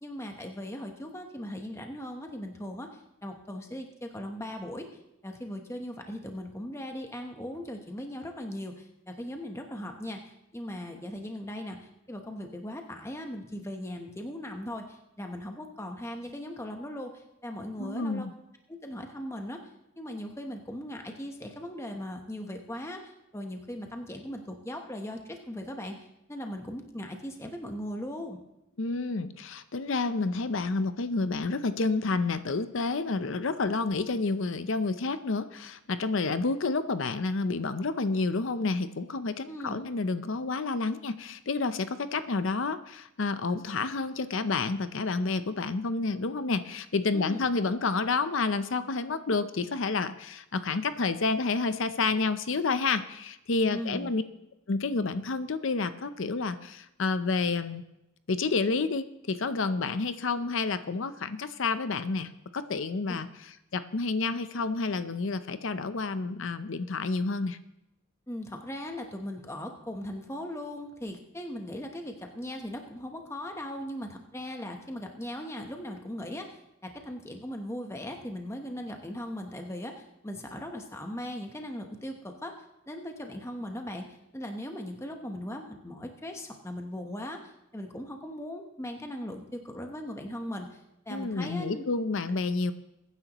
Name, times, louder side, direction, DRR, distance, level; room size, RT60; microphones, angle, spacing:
voice 1, 0.0-4.8 5.2-18.3 18.7-19.6 20.0-28.4 39.5-39.8 47.1-47.5 53.6-54.1 63.1-63.2 68.3-82.5 82.9-84.0 84.3-91.8, left 1 dB, 15° left, 3 dB, 0.9 m, -39 dB
voice 2, 17.8-18.3 28.8-54.2 54.7-57.8 58.3-63.3 63.7-67.6 91.1-92.7, left 3 dB, 65° left, 12 dB, 0.6 m, -29 dB
22.0 x 9.9 x 3.0 m, 0.89 s
head